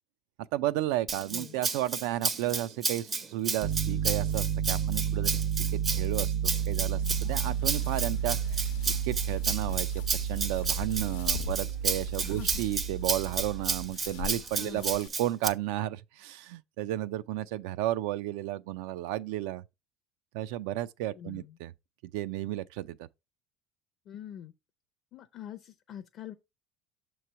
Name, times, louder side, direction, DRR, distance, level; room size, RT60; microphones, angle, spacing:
voice 1, 0.5-5.3 5.7-9.9 10.2-19.6 20.3-21.7 22.0-23.1, right 15 dB, 75° right, 0.3 m, -33 dB
Rattle (instrument), 1.1-15.5, right 4 dB, 20° right, 0.5 m, -32 dB
Piano, 3.6-13.9, right 9 dB, 55° right, 0.9 m, -31 dB
sound 1, 7.0-15.1, left 9 dB, 75° left, 0.7 m, -43 dB
voice 2, 21.2-21.5 24.1-24.5 25.1-26.3, left 10 dB, 35° left, 0.5 m, -44 dB
6.7 x 3.1 x 5.5 m
cardioid pair, 170°, 0 cm